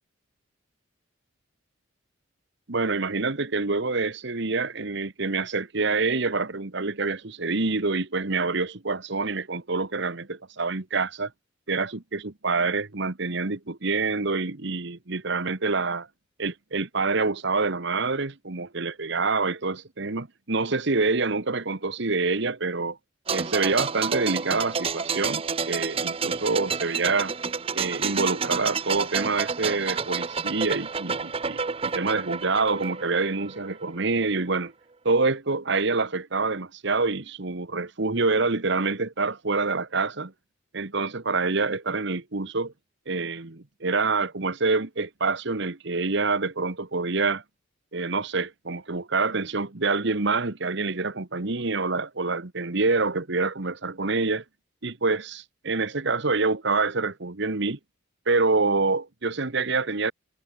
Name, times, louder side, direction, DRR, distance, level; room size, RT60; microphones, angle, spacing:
voice 1, 2.7-11.3 11.7-16.1 16.4-23.0 23.3-27.3 27.7-34.7 35.0-40.3 40.7-42.7 43.1-47.4 47.9-54.4 54.8-57.8 58.3-60.1, right 3 dB, 60° right, 1.4 m, -26 dB
sound 1, 23.3-33.9 34.2-34.3, right 5 dB, 30° right, 0.8 m, -30 dB
head